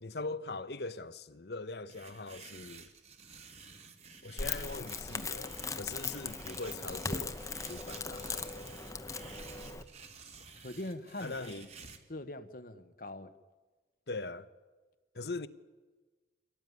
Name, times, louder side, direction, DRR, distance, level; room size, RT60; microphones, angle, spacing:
voice 1, 0.0-2.9 4.2-7.4 7.7-8.7 11.2-11.7 14.1-14.5 15.1-15.5, left 3 dB, 70° left, 1.0 m, -41 dB
sound 1, 1.9-12.0, right 5 dB, 35° right, 2.2 m, -52 dB
Crackle, 4.4-9.8, left 4 dB, 20° left, 1.0 m, -39 dB
voice 2, 10.6-11.5 12.1-13.3, left 1 dB, 55° left, 1.3 m, -42 dB
24.5 x 18.0 x 9.6 m
head